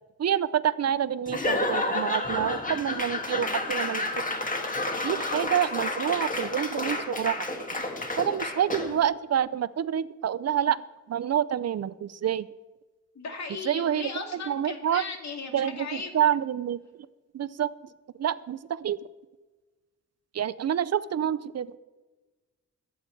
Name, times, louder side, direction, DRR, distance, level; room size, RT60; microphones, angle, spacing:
voice 1, 0.2-4.1 5.0-7.5 8.2-10.8 11.1-12.5 13.6-15.0 15.5-16.8 17.3-17.7 18.2-19.0 20.3-21.8, right 9 dB, 60° right, 16 dB, 0.5 m, -27 dB
Laughter / Applause / Crowd, 1.3-9.0, left 2 dB, 30° left, 1.5 m, -30 dB
voice 2, 8.7-9.0 13.1-16.1, left 4 dB, 70° left, 3 dB, 2.3 m, -37 dB
22.0 x 8.6 x 4.5 m, 1.2 s
wide cardioid pair, 125°, 29 cm